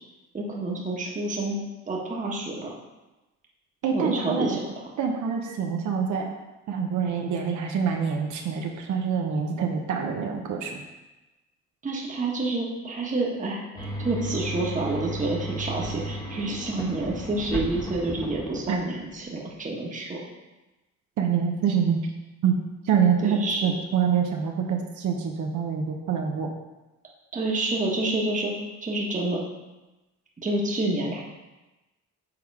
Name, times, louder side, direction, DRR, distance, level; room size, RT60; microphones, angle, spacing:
voice 1, 0.3-1.6 1.9-2.7 3.9-4.7 11.8-20.2 23.2-23.7 27.3-28.5 28.8-29.4 30.4-31.2, right 2 dB, 25° right, -2 dB, 1.2 m, -28 dB
voice 2, 3.8-4.6 5.0-6.3 6.7-10.8 18.7-18.8 21.2-22.0 22.4-22.5 22.8-26.5, right 7 dB, 75° right, 2 dB, 0.9 m, -26 dB
sound 1, 13.8-19.1, equal, 10° left, 1.0 m, -34 dB
6.7 x 3.6 x 4.7 m, 1.1 s
cardioid pair, 90°, 30 cm